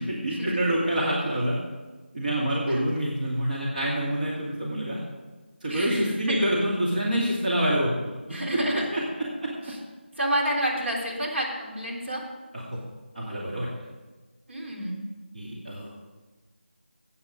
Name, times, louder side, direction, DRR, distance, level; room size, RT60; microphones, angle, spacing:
voice 1, 0.0-1.6 2.1-5.0 5.6-9.5 12.5-12.8 13.1-13.7 15.3-15.9, right 1 dB, 45° right, -5 dB, 2.3 m, -27 dB
voice 2, 5.7-6.1 8.3-8.9 9.7-9.8 10.2-12.2 14.5-15.0, right 1 dB, 75° right, -2 dB, 3.7 m, -29 dB
14.0 x 8.7 x 5.1 m, 1.3 s
figure-of-eight pair, 170°, 6 cm